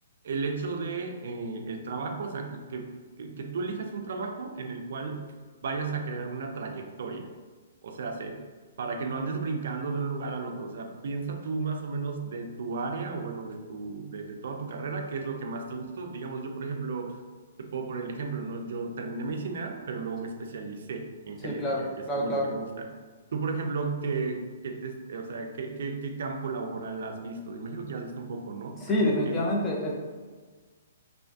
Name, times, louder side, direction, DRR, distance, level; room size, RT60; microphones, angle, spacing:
voice 1, 0.2-2.9 3.2-5.3 5.6-7.3 7.8-8.4 8.8-17.2 17.6-23.0 23.3-29.4, right 4 dB, 60° right, 3 dB, 0.3 m, -34 dB
voice 2, 21.4-22.5 28.8-29.9, left 1 dB, 15° left, -3 dB, 0.4 m, -27 dB
2.5 x 2.4 x 2.2 m, 1.4 s
hypercardioid pair, 170°, 0 cm